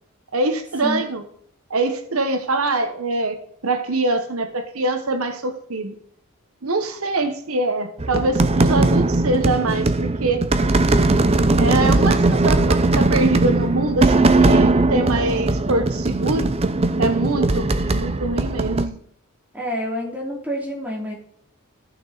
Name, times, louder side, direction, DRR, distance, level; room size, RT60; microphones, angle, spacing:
voice 1, 0.3-1.3 1.7-5.9 6.6-10.4 11.6-16.5 17.0-19.0, right 2 dB, 85° right, 7 dB, 1.3 m, -24 dB
sound 1, 8.0-18.9, right 2 dB, 30° right, 0.6 m, -19 dB
voice 2, 19.5-21.1, equal, 5° right, -2 dB, 2.9 m, -27 dB
14.5 x 6.2 x 4.1 m, 0.64 s
head